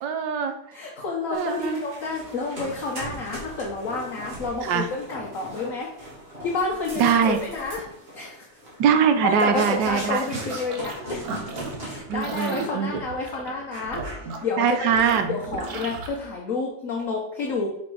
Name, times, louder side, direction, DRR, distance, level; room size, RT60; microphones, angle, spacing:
voice 1, 0.0-0.5 1.3-1.8 4.6-4.9 7.0-7.4 8.8-10.2 12.1-13.0 14.6-15.4, right 7 dB, 85° right, 8 dB, 1.4 m, -22 dB
voice 2, 0.7-5.9 6.4-7.8 8.1-8.5 9.2-11.2 11.8-14.0 14.4-14.9 15.3-17.7, left 3 dB, 55° left, -2 dB, 1.2 m, -29 dB
sound 1, 1.3-12.0 12.3-12.7 13.0-13.2 13.7-14.6 15.0-15.4, right 1 dB, 35° right, 2.1 m, -40 dB
sound 2, 9.4-11.0 11.2-16.1, right 4 dB, 65° right, 1.3 m, -36 dB
5.2 x 4.3 x 4.6 m, 0.80 s
omnidirectional pair, 1.9 m